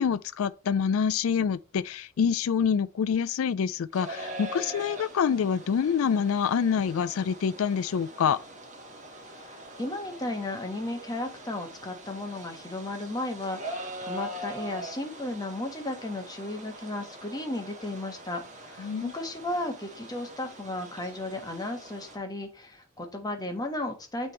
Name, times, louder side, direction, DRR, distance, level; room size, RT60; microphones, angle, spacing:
voice 1, 0.0-8.4 18.8-19.1, left 7 dB, 75° left, 0.4 m, -26 dB
sound 1, 3.9-22.2, right 1 dB, 35° right, 1.5 m, -43 dB
voice 2, 9.3-24.3, left 1 dB, 20° left, 1.3 m, -35 dB
9.0 x 3.5 x 3.2 m
head